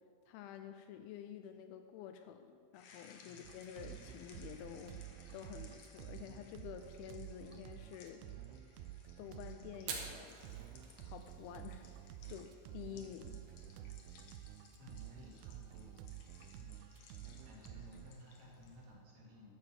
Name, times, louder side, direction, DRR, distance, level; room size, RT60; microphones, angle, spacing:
voice 1, 0.3-8.3 9.2-10.4 11.0-13.5, left 9 dB, 80° left, 7 dB, 2.3 m, -50 dB
sound 1, 2.7-18.9, left 5 dB, 65° left, 2.0 m, -63 dB
sound 2, 3.4-18.1, right 12 dB, 85° right, 2.5 m, -51 dB
Fire, 9.8-19.0, right 5 dB, 70° right, 3.1 m, -54 dB
voice 2, 14.8-15.9 16.5-16.8 17.2-19.5, left 1 dB, 50° right, -5 dB, 3.7 m, -56 dB
12.5 x 7.1 x 7.5 m, 2.3 s
omnidirectional pair, 4.5 m